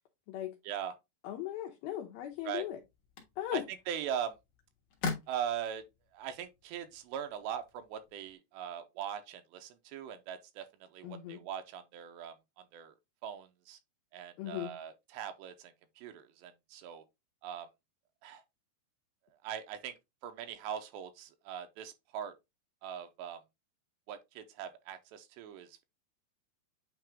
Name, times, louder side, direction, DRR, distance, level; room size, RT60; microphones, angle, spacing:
voice 1, 1.2-2.8 3.4-3.6 11.0-11.4 14.4-14.8, left 12 dB, 75° left, 2.5 m, -38 dB
sound 1, 2.1-8.3, left 4 dB, 55° left, 2.3 m, -45 dB
voice 2, 3.9-4.4 5.3-5.8 6.1-13.0 13.2-13.8 14.1-17.1 17.4-17.7 18.2-18.4 19.3-19.9 20.2-22.3 22.8-23.4 24.1-25.8, right 9 dB, 85° right, 2.9 m, -41 dB
9.0 x 3.0 x 3.5 m
omnidirectional pair, 4.9 m